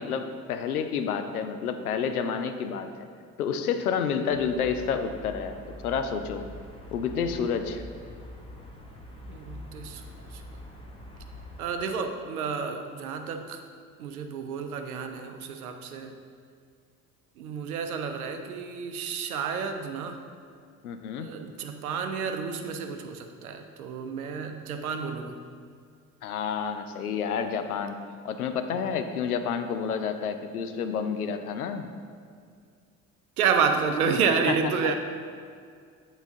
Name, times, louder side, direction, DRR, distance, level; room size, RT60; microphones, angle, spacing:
voice 1, 0.0-2.9 3.4-5.5 5.8-6.4 6.9-7.8 20.8-21.3 26.2-28.0 28.2-31.9 34.5-34.6, left 6 dB, 80° left, 8 dB, 0.5 m, -29 dB
sound 1, 4.3-11.6, left 1 dB, 10° left, 1.0 m, -44 dB
voice 2, 9.3-10.6 11.6-13.6 14.0-16.2 17.4-20.2 21.2-25.4 33.4-34.9, right 6 dB, 75° right, 6 dB, 0.6 m, -30 dB
8.0 x 4.1 x 3.7 m, 2.2 s
figure-of-eight pair, 55°, 44 cm